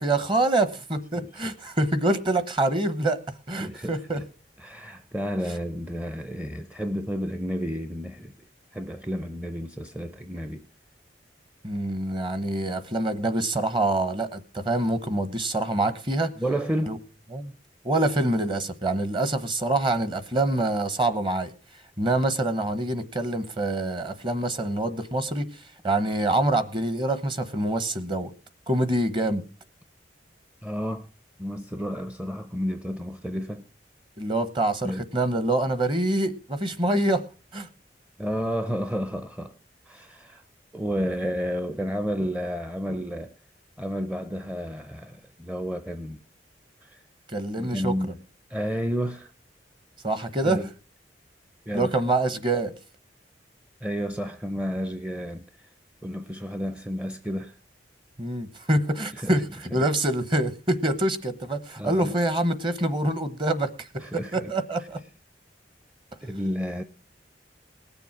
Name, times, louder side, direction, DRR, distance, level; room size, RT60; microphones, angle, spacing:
voice 1, 0.0-3.2 3.5-4.2 11.6-16.3 16.9-17.0 17.3-17.5 17.8-21.5 22.0-28.3 28.7-29.4 34.2-37.2 37.5-37.7 47.3-47.9 50.0-50.6 51.7-52.7 58.2-63.9 64.1-65.0, right 2 dB, 30° right, 1.0 m, -25 dB
voice 2, 3.6-4.2 4.6-8.3 8.7-10.6 16.4-16.9 30.6-31.1 31.4-33.6 34.8-35.1 38.2-39.5 39.9-40.4 40.7-43.3 43.8-46.2 46.8-47.0 47.6-48.2 48.5-49.3 50.4-50.7 51.7-51.9 53.8-55.4 56.0-57.5 59.2-59.4 59.7-59.9 61.8-62.1 64.0-64.5 66.2-66.8, equal, 10° right, 0.5 m, -31 dB
19.0 x 7.0 x 5.8 m
head